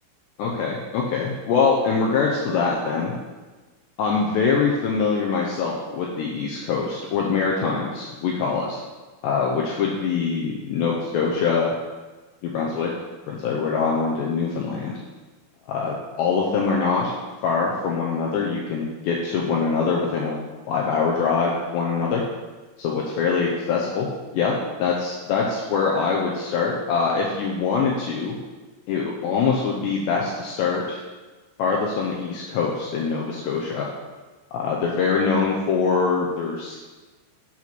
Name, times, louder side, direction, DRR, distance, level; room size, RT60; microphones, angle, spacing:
voice 1, 0.4-3.1 4.0-8.8 9.2-11.7 12.4-12.9 13.3-14.9 15.7-17.2 17.4-20.4 20.7-22.2 22.8-24.1 24.3-28.4 28.9-31.0 31.6-33.9 34.5-36.8, left 5 dB, 80° left, -2 dB, 2.5 m, -23 dB
8.4 x 4.4 x 5.9 m, 1.3 s
omnidirectional pair, 5.8 m